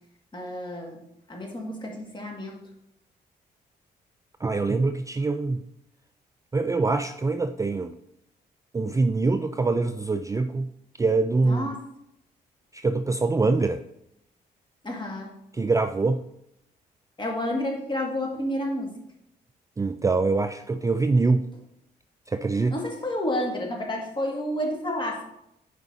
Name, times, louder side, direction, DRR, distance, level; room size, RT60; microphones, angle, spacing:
voice 1, 0.3-1.0 1.3-2.6 11.4-11.8 14.8-15.3 17.2-19.0 22.7-25.2, left 1 dB, 25° left, 0 dB, 2.0 m, -30 dB
voice 2, 4.4-5.6 6.5-8.0 8.7-10.7 11.0-11.7 12.7-13.8 15.5-16.2 19.8-21.5 22.3-22.7, right 3 dB, 20° right, 9 dB, 0.3 m, -24 dB
9.5 x 4.9 x 2.8 m, 0.80 s
supercardioid pair, 60°, 18 cm